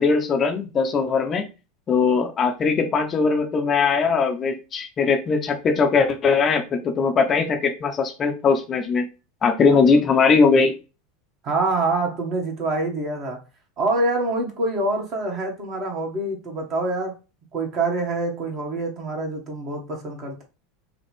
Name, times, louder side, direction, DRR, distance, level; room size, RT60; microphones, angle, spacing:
voice 1, 0.0-1.5 1.9-9.1 9.4-10.7, left 5 dB, 30° left, 5 dB, 0.7 m, -20 dB
voice 2, 11.4-13.4 13.8-17.1 17.5-20.4, right 2 dB, 40° right, 1 dB, 1.6 m, -25 dB
5.5 x 2.4 x 3.6 m, 0.31 s
figure-of-eight pair, 80°, 0 cm